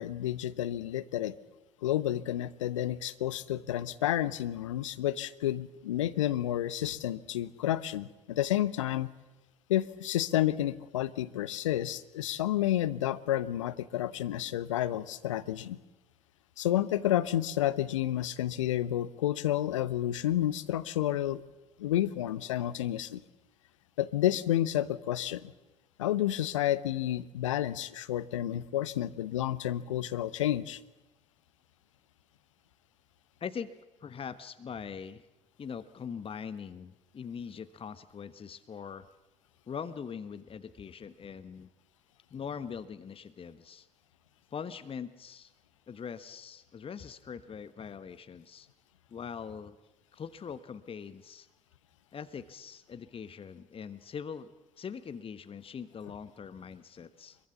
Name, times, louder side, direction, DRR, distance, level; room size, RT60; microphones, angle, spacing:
voice 1, 0.0-1.3 1.8-9.1 9.7-15.8 16.6-21.4 21.8-23.2 24.0-25.5 26.0-30.8, left 12 dB, 75° left, 16 dB, 0.9 m, -30 dB
voice 2, 33.4-33.7 34.0-35.3 35.6-39.1 39.7-41.7 42.3-43.9 44.5-45.5 45.9-48.7 49.1-49.8 50.1-51.5 52.1-57.4, left 7 dB, 35° left, 13 dB, 1.3 m, -42 dB
25.0 x 22.5 x 7.3 m, 1.0 s
figure-of-eight pair, 55°, 16 cm